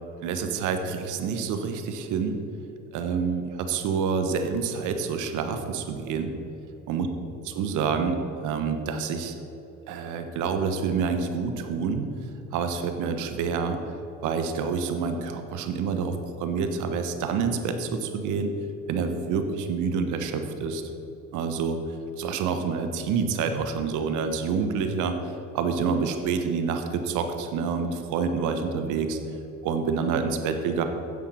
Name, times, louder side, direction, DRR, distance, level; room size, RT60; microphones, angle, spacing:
voice 1, 0.2-2.4 2.9-6.3 6.9-7.1 7.4-9.3 9.9-12.1 12.5-13.8 14.2-18.5 18.9-20.8 21.3-21.8 22.2-25.2 25.5-29.2 29.6-30.8, right 5 dB, 70° right, 7 dB, 1.2 m, -27 dB
10.0 x 7.5 x 6.2 m, 3.0 s
cardioid pair, 105°, 31 cm